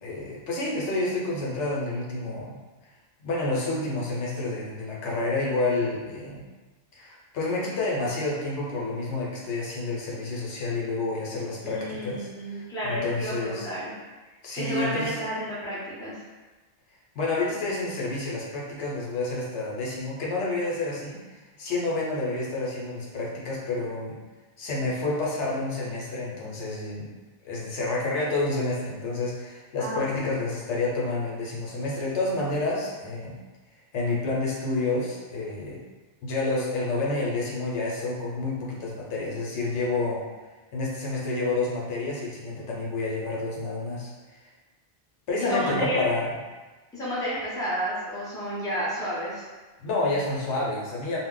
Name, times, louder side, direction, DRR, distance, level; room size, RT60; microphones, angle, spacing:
voice 1, 0.0-2.6 3.2-6.4 6.9-13.7 14.4-15.2 17.1-24.2 24.6-27.1 27.4-33.3 33.9-35.8 36.2-40.2 40.7-44.4 45.3-46.3 49.8-51.2, left 2 dB, 80° left, -4 dB, 1.0 m, -29 dB
voice 2, 11.6-14.0 14.5-16.2 29.8-30.4 45.4-46.1 46.9-49.4, equal, 5° left, -9 dB, 0.6 m, -31 dB
2.3 x 2.0 x 3.7 m, 1.2 s
omnidirectional pair, 1.2 m